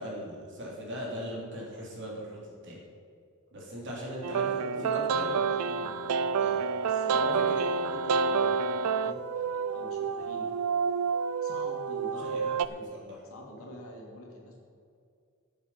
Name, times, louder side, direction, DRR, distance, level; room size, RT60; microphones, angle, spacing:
voice 1, 0.0-2.8 3.5-4.5 4.8-5.3 6.4-6.6 7.1-7.6 9.0-9.2 12.2-12.5 12.9-13.2 13.6-13.7, equal, 55° right, -3 dB, 3.3 m, -39 dB
voice 2, 4.2-6.1 6.4-6.6 6.8-7.6 7.9-10.5 11.4-13.0 13.3-14.6, equal, 70° left, -1 dB, 2.4 m, -45 dB
sound 1, 4.2-12.7, right 5 dB, 90° right, 0.4 m, -29 dB
14.0 x 7.2 x 5.9 m, 2.3 s
head